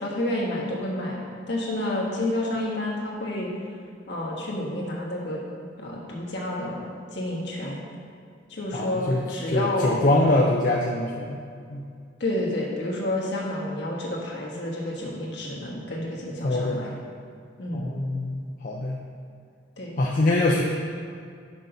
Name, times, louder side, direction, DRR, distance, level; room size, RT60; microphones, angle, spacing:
voice 1, 0.0-1.2 1.5-3.5 4.1-5.4 5.8-7.8 8.5-10.4 12.2-16.9 17.6-17.9 19.8-20.0, left 1 dB, 60° left, -3 dB, 1.5 m, -29 dB
voice 2, 8.7-9.2 9.5-11.4 11.7-11.8 16.4-17.0 17.7-19.0 20.0-20.6, left 1 dB, 45° left, -2 dB, 0.6 m, -24 dB
6.3 x 5.3 x 5.5 m, 2.3 s
head